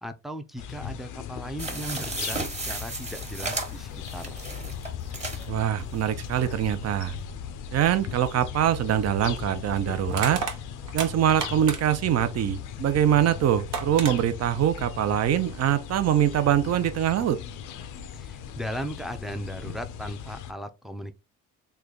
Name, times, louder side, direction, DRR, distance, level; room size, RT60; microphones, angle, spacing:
voice 1, 0.0-2.4 2.6-4.4 18.1-21.1, equal, ahead, 0.4 m, -37 dB
sound 1, 0.6-20.5, left 8 dB, 85° left, 0.5 m, -38 dB
sound 2, 1.6-5.5 6.0-6.1 6.3-6.4, right 2 dB, 20° right, 1.1 m, -34 dB
voice 2, 5.5-7.2 7.7-10.4 10.9-17.4, right 10 dB, 55° right, 0.6 m, -23 dB
Crushing, 10.1-12.1 13.3-13.4 13.7-14.1, right 6 dB, 75° right, 1.0 m, -32 dB
3.2 x 2.3 x 3.8 m
cardioid pair, 90°, 30 cm